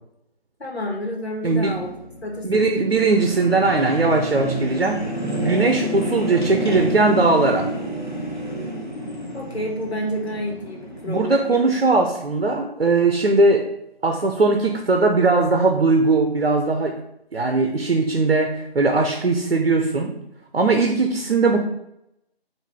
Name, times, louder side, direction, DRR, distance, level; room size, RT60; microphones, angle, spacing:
voice 1, 0.6-1.9 2.2-3.1 9.3-11.7, equal, 80° left, 0 dB, 1.5 m, -30 dB
voice 2, 1.4-1.8 2.4-5.0 5.4-7.7 11.1-13.7 14.0-16.9 17.3-20.2 20.5-21.6, right 3 dB, 70° right, 4 dB, 0.7 m, -19 dB
sound 1, 1.5-11.2, right 1 dB, 45° left, 1.2 m, -29 dB
4.7 x 2.7 x 3.7 m, 0.81 s
figure-of-eight pair, 180°, 31 cm